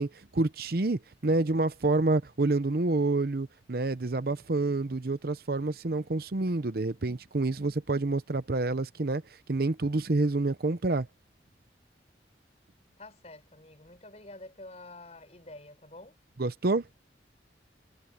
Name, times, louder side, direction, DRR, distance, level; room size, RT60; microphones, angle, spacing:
voice 1, 0.0-9.2 9.5-11.1 16.4-16.8, right 2 dB, 55° right, 0.7 m, -28 dB
voice 2, 13.0-16.2, left 2 dB, 35° left, 5.4 m, -48 dB
head